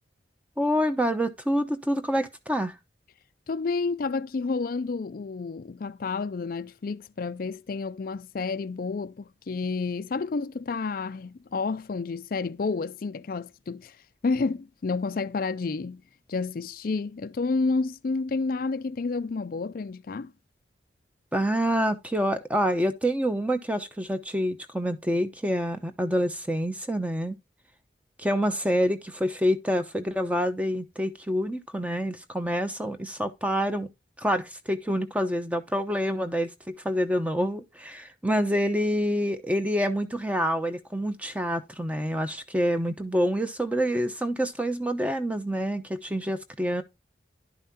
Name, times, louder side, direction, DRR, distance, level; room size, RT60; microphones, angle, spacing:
voice 1, 0.6-2.7 21.3-27.4 28.2-33.9 34.2-36.5 36.8-46.8, equal, 10° right, 0.8 m, -27 dB
voice 2, 3.5-14.0 14.2-16.0 16.3-20.3, left 4 dB, 50° left, 0.4 m, -30 dB
11.0 x 5.5 x 2.7 m
head